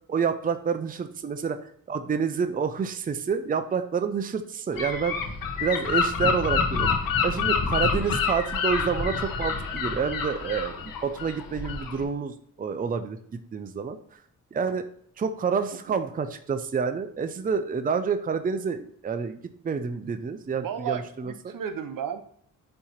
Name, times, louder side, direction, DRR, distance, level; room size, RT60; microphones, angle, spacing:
voice 1, 0.1-5.2 5.6-6.9 7.2-13.2 13.5-14.0 14.5-14.8 15.2-19.4 19.6-21.5, right 6 dB, 25° right, 8 dB, 0.5 m, -28 dB
Gull seagull / Wind, 4.8-12.0, left 5 dB, 85° left, 1.1 m, -27 dB
voice 2, 20.6-22.2, right 8 dB, 75° right, 8 dB, 0.9 m, -33 dB
8.6 x 3.0 x 4.2 m, 0.63 s
wide cardioid pair, 115°, 33 cm